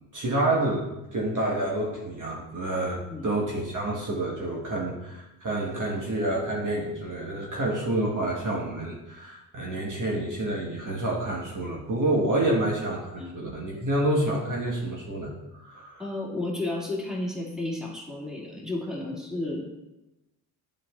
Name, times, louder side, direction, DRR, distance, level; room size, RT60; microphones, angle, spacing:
voice 1, 0.1-16.1, right 1 dB, 40° right, -4 dB, 1.4 m, -28 dB
voice 2, 2.9-3.3 13.2-13.3 16.0-19.7, left 2 dB, ahead, -4 dB, 2.2 m, -32 dB
7.5 x 5.3 x 2.4 m, 0.98 s
hypercardioid pair, 50°, 46 cm